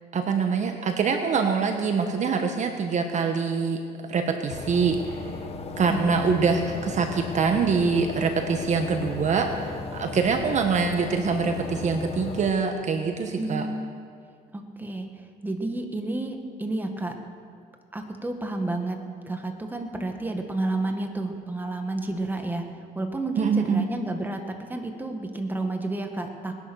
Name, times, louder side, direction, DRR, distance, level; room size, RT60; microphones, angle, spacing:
voice 1, 0.1-3.8 4.1-5.2 5.8-13.7 23.4-23.8, right 5 dB, 45° right, 5 dB, 1.2 m, -24 dB
sound 1, 4.5-12.5, left 4 dB, 35° left, 1.3 m, -36 dB
voice 2, 5.9-6.2 13.4-13.9 14.5-15.1 15.4-17.2 17.9-19.0 19.3-22.7 23.0-26.6, right 2 dB, 10° right, 4 dB, 1.7 m, -30 dB
20.0 x 11.0 x 6.4 m, 2.2 s
cardioid pair, 110°, 17 cm